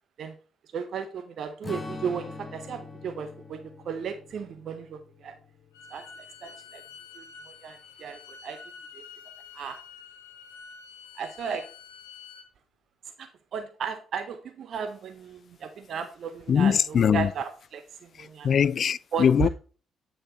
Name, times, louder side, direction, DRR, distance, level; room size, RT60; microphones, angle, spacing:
voice 1, 0.7-5.3 5.9-6.0 6.4-6.8 7.2-8.6 8.9-9.0 9.5-9.8 11.2-11.7 13.2-18.5 19.1-19.5, right 7 dB, 55° right, 0.6 m, -35 dB
Strum, 1.6-6.3, left 3 dB, 25° left, 1.2 m, -43 dB
Bowed string instrument, 5.7-12.5, left 6 dB, 80° left, 0.9 m, -48 dB
voice 2, 16.5-17.3 18.2-19.5, left 7 dB, 50° left, 0.3 m, -22 dB
8.8 x 4.5 x 3.8 m
figure-of-eight pair, 45°, 0 cm